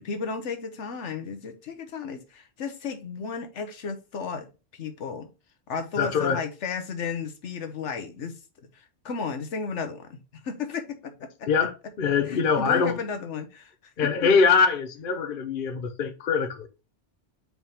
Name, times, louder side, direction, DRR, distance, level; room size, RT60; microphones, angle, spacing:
voice 1, 0.0-4.5 4.8-5.3 5.7-8.3 8.6-8.7 9.0-11.5 12.3-13.7 14.2-14.3, left 5 dB, 85° left, 1.2 m, -34 dB
voice 2, 6.0-6.4 11.5-13.0 14.0-16.7, left 5 dB, 50° left, 0.9 m, -23 dB
4.7 x 3.6 x 5.5 m
omnidirectional pair, 1.2 m